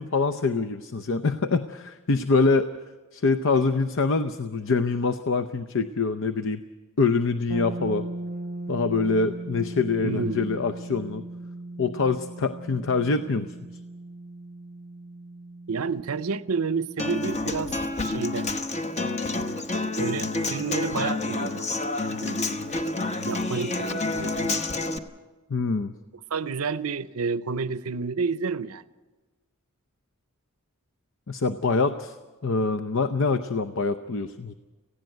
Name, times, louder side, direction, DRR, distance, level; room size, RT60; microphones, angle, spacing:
voice 1, 0.0-2.7 3.1-6.6 7.0-8.1 8.7-11.2 11.8-13.5 25.5-25.9 31.3-32.2 32.4-34.5, left 4 dB, 60° left, 10 dB, 0.7 m, -25 dB
sound 1, 7.5-17.3, right 2 dB, 35° right, 0.7 m, -38 dB
voice 2, 10.0-10.6 15.7-17.7 18.0-18.5 19.0-19.1 20.0-22.8 23.3-24.3 26.3-28.8, right 5 dB, 75° right, 15 dB, 0.7 m, -30 dB
Human voice / Acoustic guitar, 17.0-25.0, left 2 dB, 30° left, 1.0 m, -29 dB
18.5 x 16.0 x 9.3 m, 1.2 s
head